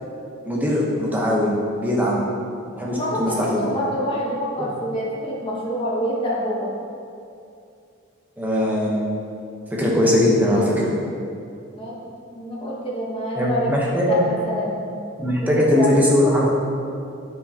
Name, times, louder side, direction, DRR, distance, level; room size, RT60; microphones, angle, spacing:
voice 1, 0.4-2.3 2.7-3.7 4.6-4.7 8.4-9.1 9.7-10.9 13.3-14.2 15.2-16.5, left 1 dB, 10° right, -5 dB, 0.9 m, -20 dB
voice 2, 2.9-6.7 11.8-12.0 12.3-14.8 15.5-15.9, equal, 25° left, -5 dB, 1.2 m, -26 dB
9.1 x 4.6 x 2.9 m, 2.5 s
head